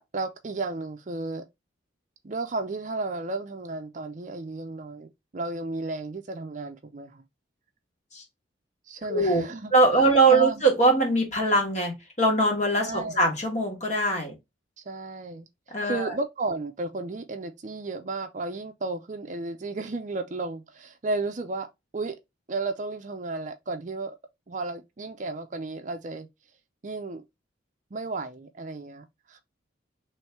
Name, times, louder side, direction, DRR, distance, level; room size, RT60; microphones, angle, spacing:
voice 1, 0.0-1.4 2.2-7.2 8.9-9.7 10.3-10.6 12.8-13.2 14.9-15.5 15.8-21.7 21.9-22.2 22.5-24.2 24.5-26.3 26.8-27.2 27.9-29.4, right 3 dB, 40° right, 0.5 m, -33 dB
voice 2, 9.1-9.4 9.7-14.3 15.7-16.1, right 2 dB, 35° left, 1.5 m, -22 dB
3.1 x 3.1 x 4.4 m
head